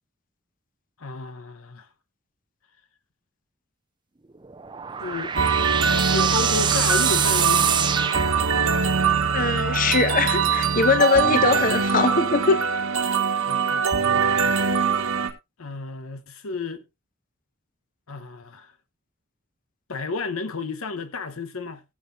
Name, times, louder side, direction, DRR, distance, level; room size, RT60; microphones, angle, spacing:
voice 1, 1.0-1.9 5.0-5.3 6.0-7.7 13.5-14.6 15.6-16.8 18.1-18.7 19.9-21.8, left 4 dB, 90° left, 0.9 m, -32 dB
sound 1, 4.4-9.0, right 7 dB, 20° right, 0.5 m, -25 dB
sound 2, 5.4-15.3, right 6 dB, 90° right, 1.7 m, -22 dB
voice 2, 9.3-12.6, left 4 dB, 40° left, 1.0 m, -21 dB
18.5 x 7.3 x 2.5 m
head